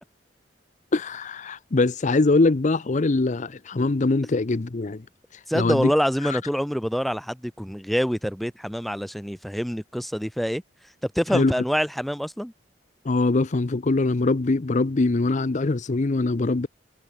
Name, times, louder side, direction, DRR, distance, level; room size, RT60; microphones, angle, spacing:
voice 1, 0.9-5.0 5.5-5.9 6.3-6.4 11.3-11.5 13.0-16.7, left 3 dB, 40° left, 0.6 m, -22 dB
voice 2, 5.5-10.6 11.2-12.5, equal, ahead, 5.2 m, -26 dB
head